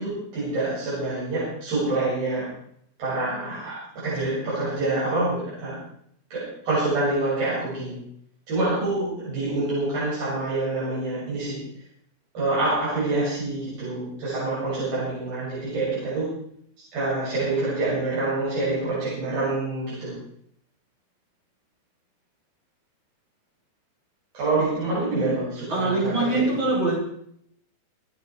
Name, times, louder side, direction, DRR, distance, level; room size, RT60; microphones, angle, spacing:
voice 1, 0.0-2.5 3.0-3.8 4.0-5.8 6.3-8.0 8.5-11.6 12.3-16.3 16.9-20.1 24.3-26.5, right 2 dB, 80° right, -9 dB, 9.0 m, -26 dB
voice 2, 25.7-27.0, right 2 dB, 30° right, -4 dB, 6.1 m, -23 dB
28.0 x 9.5 x 4.9 m, 0.70 s
omnidirectional pair, 4.0 m